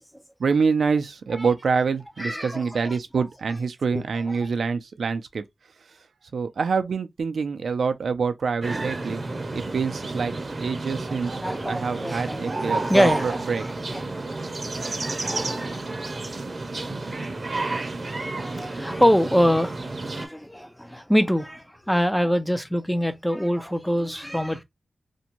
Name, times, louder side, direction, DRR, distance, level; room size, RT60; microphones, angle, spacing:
voice 1, 0.4-5.4 6.3-9.2 9.5-10.3 10.6-11.3 11.6-13.6, right 5 dB, 80° right, 0.3 m, -26 dB
voice 2, 2.2-3.0 11.4-14.8 15.3-16.4 18.3-24.6, equal, 5° left, 0.4 m, -25 dB
sound 1, 8.6-20.3, right 2 dB, 45° right, 0.6 m, -31 dB
2.5 x 2.2 x 2.9 m
wide cardioid pair, 85°, 0 cm